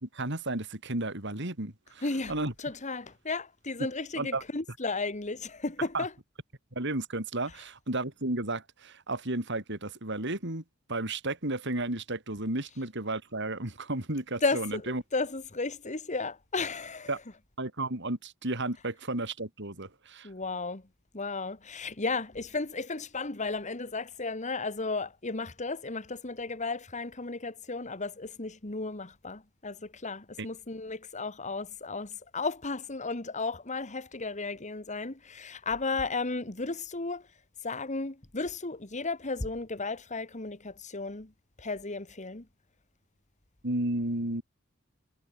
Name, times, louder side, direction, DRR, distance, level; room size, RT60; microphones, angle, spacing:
voice 1, 0.0-2.5 4.2-4.4 5.9-6.0 6.7-10.6 10.9-15.0 17.1-17.2 17.6-20.3 30.4-30.5 43.6-44.4, right 2 dB, 60° right, 4.7 m, -33 dB
voice 2, 2.0-2.3 2.6-6.1 14.4-17.1 20.2-20.8 21.1-37.3 37.6-41.3 41.6-42.5, left 3 dB, 35° left, 1.8 m, -34 dB
head